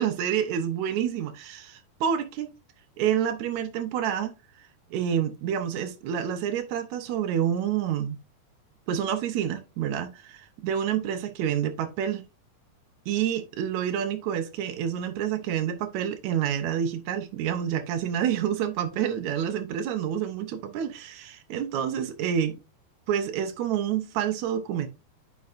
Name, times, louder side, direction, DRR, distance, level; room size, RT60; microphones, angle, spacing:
voice 1, 0.0-2.5 3.0-8.2 8.9-12.2 13.1-22.6 23.1-24.9, right 9 dB, 80° right, 1.6 m, -28 dB
9.5 x 5.3 x 2.5 m
omnidirectional pair, 4.3 m